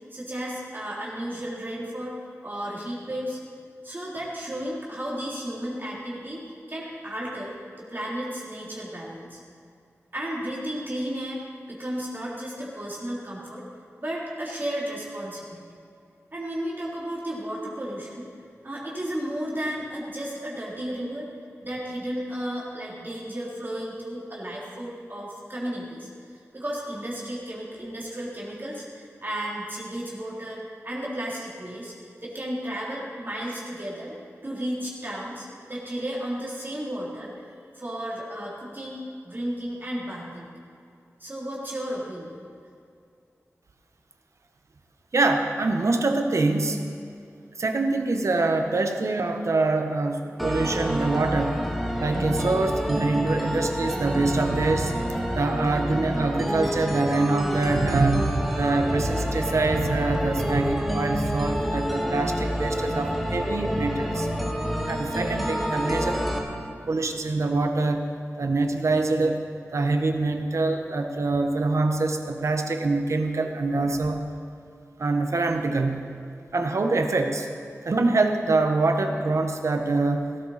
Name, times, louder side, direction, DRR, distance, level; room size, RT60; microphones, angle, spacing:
voice 1, 0.1-2.2 2.4-3.4 3.8-9.4 10.1-11.4 11.7-13.6 14.0-15.6 16.3-18.3 18.6-21.3 21.6-31.9 32.2-34.2 34.4-37.5 37.8-40.5 41.2-42.3, equal, 40° right, -5 dB, 3.5 m, -33 dB
voice 2, 45.1-46.9 47.6-51.6 52.0-64.3 64.9-66.2 66.9-68.1 68.4-69.4 69.7-74.2 75.0-76.0 76.5-77.5 77.8-80.3, right 3 dB, 70° right, 5 dB, 1.2 m, -24 dB
sound 1, 50.4-66.4, equal, ahead, 1.8 m, -28 dB
17.0 x 14.0 x 4.3 m, 2.4 s
wide cardioid pair, 55°, 5 cm